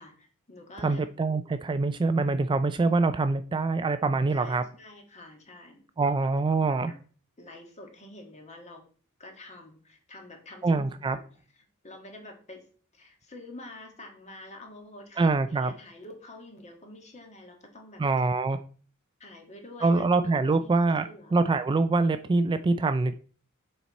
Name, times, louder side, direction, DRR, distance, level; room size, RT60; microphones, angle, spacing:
voice 1, 0.0-1.0 4.3-6.1 6.5-7.0 7.4-8.8 9.2-11.2 11.5-12.7 12.9-18.0 19.2-21.4, left 1 dB, 35° left, 3 dB, 1.6 m, -48 dB
voice 2, 0.8-4.6 6.0-6.9 10.6-11.2 15.2-15.7 18.0-18.6 19.8-23.1, right 3 dB, 20° right, 10 dB, 0.3 m, -25 dB
7.0 x 4.5 x 4.1 m, 0.41 s
head